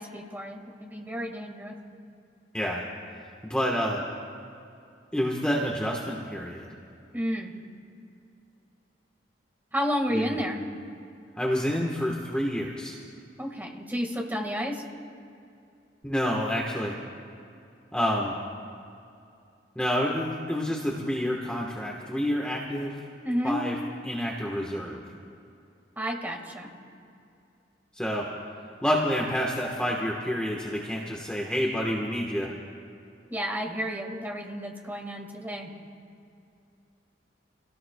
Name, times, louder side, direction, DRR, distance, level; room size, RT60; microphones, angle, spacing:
voice 1, 0.0-1.8 7.1-7.5 9.7-10.6 13.4-14.8 23.2-23.6 25.9-26.7 33.3-35.7, equal, 10° right, 0 dB, 1.7 m, -31 dB
voice 2, 3.4-4.0 5.1-6.7 10.1-10.4 11.4-13.0 16.0-17.0 17.9-18.3 19.7-23.0 23.4-23.7 24.0-25.0 27.9-28.3 28.8-32.5, equal, 5° left, -2 dB, 1.2 m, -28 dB
29.0 x 17.5 x 2.3 m, 2.6 s
head